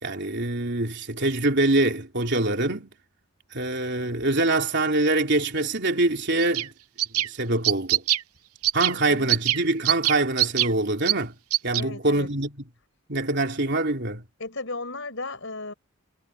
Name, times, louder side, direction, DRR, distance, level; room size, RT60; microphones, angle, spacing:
voice 1, 0.0-2.9 3.5-6.7 7.2-8.0 8.7-11.3 11.6-12.5 13.1-14.2, right 2 dB, 50° right, 3.5 m, -24 dB
sound 1, 6.4-6.7 7.0-7.3 7.6-8.2 8.6-8.9 9.3-9.6 9.9-10.7 11.1-11.2 11.5-11.8, right 15 dB, 90° right, 0.7 m, -22 dB
voice 2, 11.8-12.3 14.4-15.7, left 3 dB, 60° left, 6.2 m, -35 dB
head